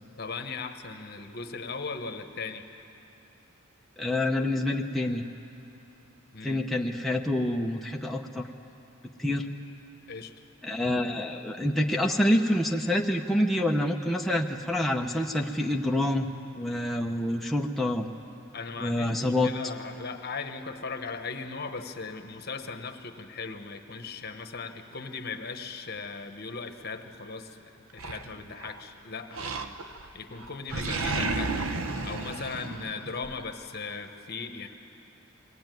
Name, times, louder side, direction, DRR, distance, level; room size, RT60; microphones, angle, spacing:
voice 1, 0.2-2.6 6.3-6.7 10.1-10.3 18.5-29.8 30.1-31.6 32.0-34.7, left 4 dB, 50° left, 7 dB, 1.2 m, -38 dB
voice 2, 4.0-5.2 6.4-8.5 9.2-9.5 10.6-16.3 16.5-18.1 18.8-19.5, left 1 dB, ahead, 0 dB, 0.7 m, -27 dB
Animal, 28.0-28.8 29.3-30.1 30.4-33.3, right 3 dB, 85° right, 1.0 m, -32 dB
22.0 x 17.0 x 9.2 m, 3.0 s
head